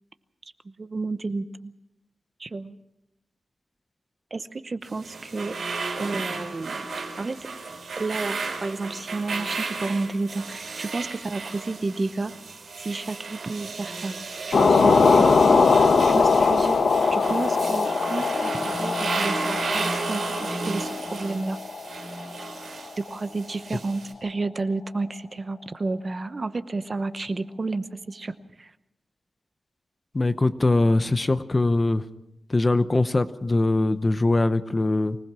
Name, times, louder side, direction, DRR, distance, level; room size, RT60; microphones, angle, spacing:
voice 1, 0.8-1.7 2.4-2.8 4.3-5.6 6.0-6.9 7.2-7.5 8.0-12.3 12.8-14.1 14.5-15.3 16.1-16.8 17.1-21.6 23.0-28.3 28.6-28.7, right 3 dB, 35° right, 12 dB, 0.9 m, -31 dB
sound 1, 4.8-24.1, right 3 dB, 75° right, 5.0 m, -33 dB
sound 2, 14.5-22.5, left 4 dB, 65° left, 1.4 m, -21 dB
voice 2, 30.1-32.0 32.5-35.2, left 2 dB, 25° left, 12 dB, 0.8 m, -22 dB
24.5 x 19.0 x 6.1 m, 0.84 s
wide cardioid pair, 165°, 0 cm